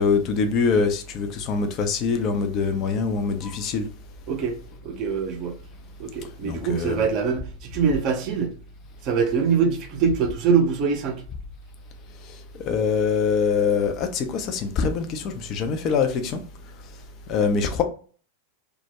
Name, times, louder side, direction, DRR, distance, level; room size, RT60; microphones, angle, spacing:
voice 1, 0.0-3.9 6.5-7.1 12.7-16.4 17.3-17.8, left 5 dB, 40° left, 0.4 m, -24 dB
voice 2, 4.8-5.5 6.0-8.5 9.0-11.2, right 6 dB, 40° right, 0.6 m, -23 dB
2.2 x 2.1 x 2.9 m
figure-of-eight pair, 90°, 0 cm